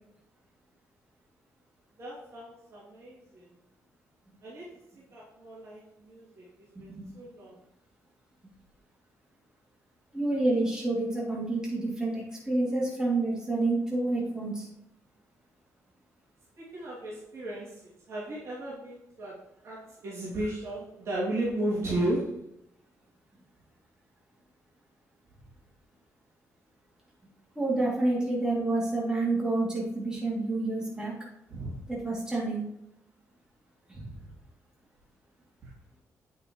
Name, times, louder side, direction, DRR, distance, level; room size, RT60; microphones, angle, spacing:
voice 1, 2.0-3.4 4.4-4.7 5.1-6.5 6.8-7.5 16.6-19.4 19.6-22.5 31.5-31.8, right 1 dB, 55° right, -7 dB, 2.6 m, -34 dB
voice 2, 10.1-14.7 27.5-31.1 31.9-32.6 33.9-34.1, right 2 dB, 10° right, -5 dB, 2.7 m, -28 dB
8.8 x 6.5 x 3.1 m, 0.79 s
cardioid pair, 115°, 6 cm